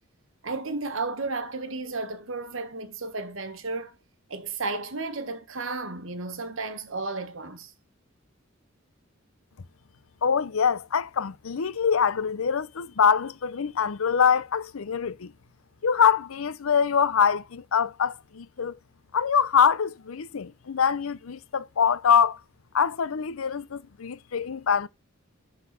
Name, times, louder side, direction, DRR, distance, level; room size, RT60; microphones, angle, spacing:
voice 1, 0.4-4.0 4.3-7.7, right 3 dB, 65° right, 1.4 m, -33 dB
voice 2, 10.2-15.3 15.8-18.8 19.1-22.4 22.7-24.9, left 7 dB, 80° left, 0.6 m, -24 dB
12.0 x 4.0 x 4.1 m
head